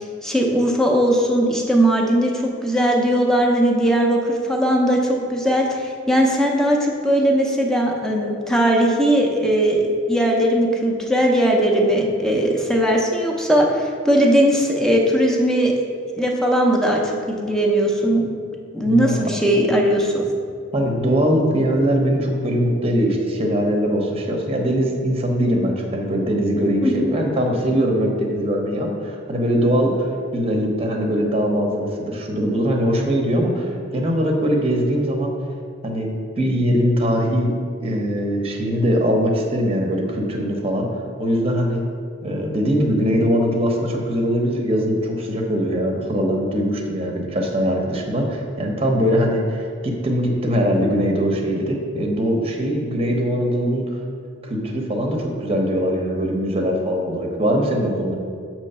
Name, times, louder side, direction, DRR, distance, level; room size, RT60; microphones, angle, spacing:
voice 1, 0.0-15.8 16.2-17.0 17.3-18.3 18.7-20.3 26.8-27.1, equal, 5° left, -1 dB, 0.6 m, -19 dB
voice 2, 18.8-19.2 20.7-30.1 30.3-35.3 35.8-36.1 36.4-37.5 37.8-40.9 41.2-41.8 42.2-53.9 54.4-58.2, equal, 30° right, 1 dB, 0.8 m, -21 dB
7.6 x 3.1 x 5.5 m, 2.2 s
head